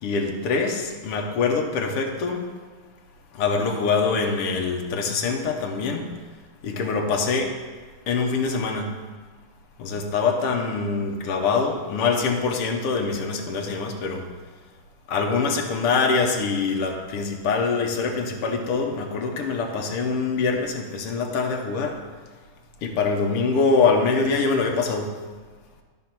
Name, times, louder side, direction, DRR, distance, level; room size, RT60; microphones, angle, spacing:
voice 1, 0.0-2.5 3.3-6.2 6.6-7.6 8.1-8.9 9.8-14.2 15.1-22.0 22.8-25.2, left 4 dB, 90° left, 2 dB, 2.0 m, -24 dB
12.5 x 4.4 x 5.9 m, 1.5 s
omnidirectional pair, 2.4 m